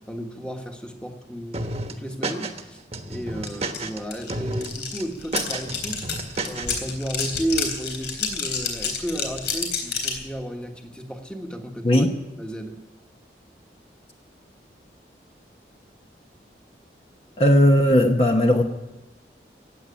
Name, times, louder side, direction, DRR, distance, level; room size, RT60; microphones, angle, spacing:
voice 1, 0.1-2.8 3.1-6.0 6.5-12.0 12.4-12.8, right 1 dB, 5° left, 4 dB, 1.4 m, -33 dB
sound 1, 1.5-2.6 2.9-4.0 4.3-4.7 5.0-6.8, right 2 dB, 35° right, 1.2 m, -31 dB
sound 2, 3.5-3.6 3.7-10.2, left 6 dB, 85° left, 3.7 m, -29 dB
voice 2, 17.4-18.6, left 1 dB, 35° left, 3 dB, 1.0 m, -17 dB
15.5 x 9.1 x 10.0 m, 1.0 s
head